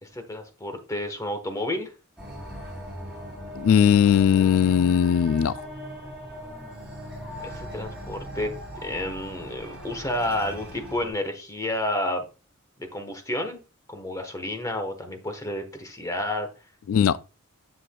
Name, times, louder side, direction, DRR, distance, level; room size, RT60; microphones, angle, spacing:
voice 1, 0.0-1.9 7.4-8.5 8.8-12.2 12.8-13.6 13.9-16.5, left 1 dB, 15° left, 1.1 m, -30 dB
sound 1, 2.2-11.1, equal, 5° right, 3.6 m, -39 dB
voice 2, 3.6-5.5 16.9-17.2, left 8 dB, 70° left, 0.3 m, -19 dB
7.7 x 6.7 x 2.2 m
head